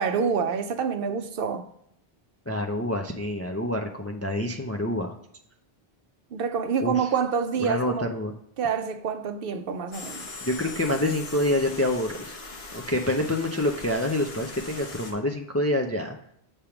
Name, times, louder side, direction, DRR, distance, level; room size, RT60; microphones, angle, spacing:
voice 1, 0.0-1.7 6.3-8.1 8.6-10.3, right 6 dB, 65° right, 0.7 m, -27 dB
voice 2, 2.5-5.2 6.8-7.1 7.6-8.3 10.4-12.4 12.7-16.2, left 1 dB, 25° left, 0.3 m, -27 dB
sound 1, 9.9-15.1, left 3 dB, 75° left, 1.3 m, -40 dB
7.1 x 3.4 x 5.8 m
omnidirectional pair, 1.1 m